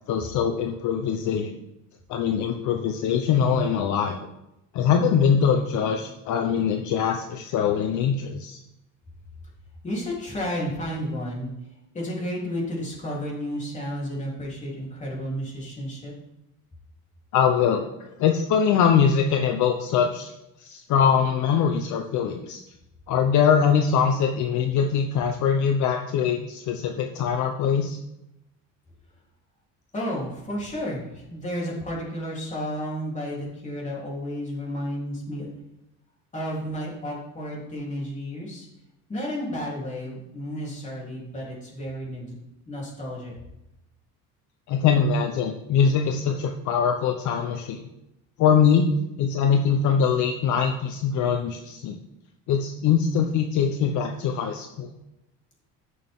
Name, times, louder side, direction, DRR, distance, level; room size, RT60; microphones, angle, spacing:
voice 1, 0.1-1.5 2.1-4.2 4.7-8.6 17.3-17.9 18.2-20.3 20.6-22.6 23.1-28.0 44.7-47.9 48.4-48.9 49.2-52.0 52.5-54.9, left 7 dB, 55° left, 4 dB, 0.9 m, -22 dB
voice 2, 9.8-11.5 11.9-16.1 29.9-35.5 36.3-38.7 39.1-42.3 42.7-43.3, equal, 20° left, -4 dB, 3.5 m, -32 dB
14.0 x 6.7 x 3.7 m, 0.89 s
cardioid pair, 140°, 35 cm